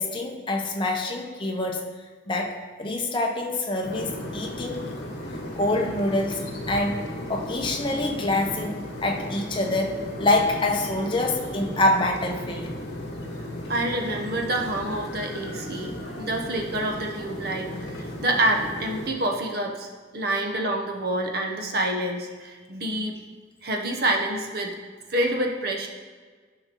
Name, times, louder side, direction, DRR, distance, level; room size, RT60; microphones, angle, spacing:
voice 1, 0.0-1.8 2.3-4.9 5.6-6.4 6.7-7.0 7.3-12.7, left 2 dB, 25° left, 1 dB, 0.7 m, -26 dB
sound 1, 3.8-19.1, left 1 dB, 60° left, 1.2 m, -35 dB
voice 2, 13.7-23.2 23.6-24.8 25.1-25.9, right 1 dB, 55° right, 2 dB, 0.9 m, -27 dB
10.5 x 5.7 x 3.0 m, 1.5 s
head